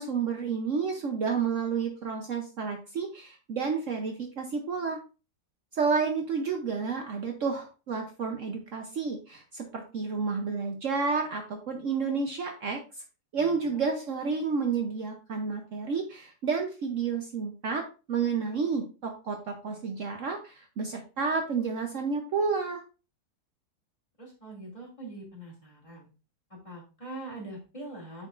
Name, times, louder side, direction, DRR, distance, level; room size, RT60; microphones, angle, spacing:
voice 1, 0.0-5.0 5.7-12.8 13.3-17.8 18.1-22.8, right 5 dB, 60° right, 4 dB, 1.1 m, -30 dB
voice 2, 13.3-13.8 24.2-26.1 26.5-28.3, right 2 dB, 20° left, -4 dB, 2.5 m, -43 dB
9.2 x 5.3 x 2.5 m, 0.33 s
omnidirectional pair, 1.7 m